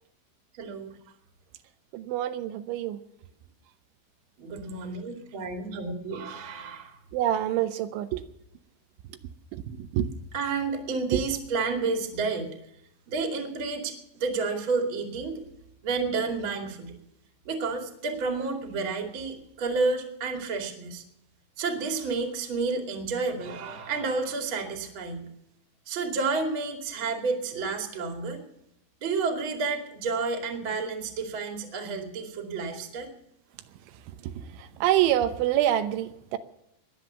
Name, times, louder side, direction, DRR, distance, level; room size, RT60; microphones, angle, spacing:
voice 1, 0.6-0.9 4.4-7.0 10.3-12.5 13.1-15.4 15.8-16.9 17.4-21.0 21.6-25.3 25.9-28.4 29.0-33.1, right 4 dB, 35° right, 5 dB, 2.4 m, -30 dB
voice 2, 1.9-3.0 7.1-8.2 9.7-10.1 11.1-11.2 34.8-36.4, right 12 dB, 85° right, 10 dB, 3.3 m, -26 dB
21.0 x 8.1 x 7.0 m, 0.79 s
omnidirectional pair, 5.3 m